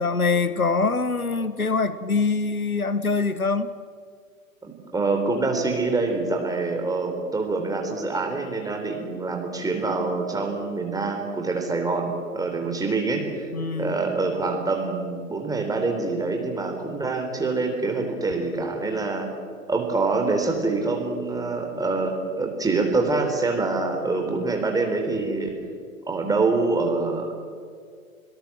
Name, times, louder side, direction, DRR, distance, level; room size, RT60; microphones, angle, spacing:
voice 1, 0.0-3.7 13.5-14.0, left 4 dB, 90° left, 14 dB, 1.2 m, -24 dB
voice 2, 4.6-13.3 13.8-19.3 19.7-25.6 26.1-27.4, right 3 dB, 10° right, 3 dB, 4.0 m, -25 dB
26.5 x 17.5 x 7.6 m, 2.1 s
figure-of-eight pair, 100°, 42 cm